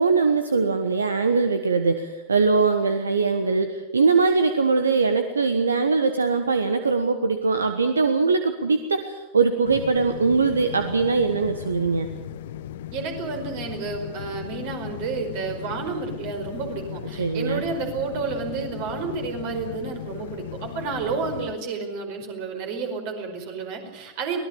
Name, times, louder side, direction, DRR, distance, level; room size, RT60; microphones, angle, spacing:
voice 1, 0.0-12.1 17.2-17.6, right 4 dB, 75° right, 9 dB, 1.3 m, -21 dB
sound 1, 9.6-21.5, left 11 dB, 55° left, 1.0 m, -37 dB
voice 2, 12.9-24.4, right 4 dB, 45° right, 5 dB, 4.9 m, -30 dB
24.0 x 18.5 x 7.2 m, 1.1 s
figure-of-eight pair, 90°, 0 cm